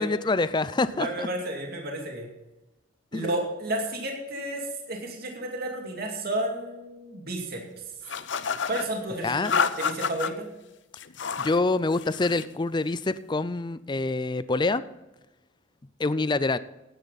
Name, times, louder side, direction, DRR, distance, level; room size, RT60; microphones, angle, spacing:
voice 1, 0.0-1.3 3.1-3.3 9.2-9.6 11.4-14.8 16.0-16.6, left 3 dB, 25° left, 15 dB, 0.4 m, -26 dB
voice 2, 1.0-2.3 3.1-7.6 8.7-10.5, right 1 dB, 55° right, 1 dB, 2.5 m, -32 dB
sound 1, 8.1-8.9 9.4-10.3 11.0-11.6 11.9-12.5, left 6 dB, 70° left, 0.7 m, -29 dB
15.5 x 10.5 x 4.1 m, 1.0 s
head